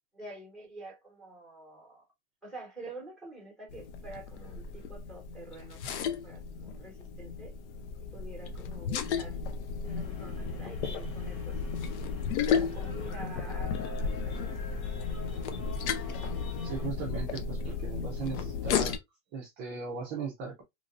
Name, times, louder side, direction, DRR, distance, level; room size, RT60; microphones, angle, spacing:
voice 1, 0.1-2.0 2.4-7.5 8.0-9.4 9.8-12.0 12.5-15.2, right 2 dB, ahead, 1.1 m, -48 dB
sound 1, 3.7-19.0, left 6 dB, 55° left, 0.6 m, -34 dB
sound 2, 9.8-16.9, left 3 dB, 90° left, 1.5 m, -47 dB
voice 2, 16.6-19.0 19.3-20.6, right 5 dB, 25° right, 0.5 m, -38 dB
3.0 x 2.4 x 2.5 m
supercardioid pair, 150°, 41 cm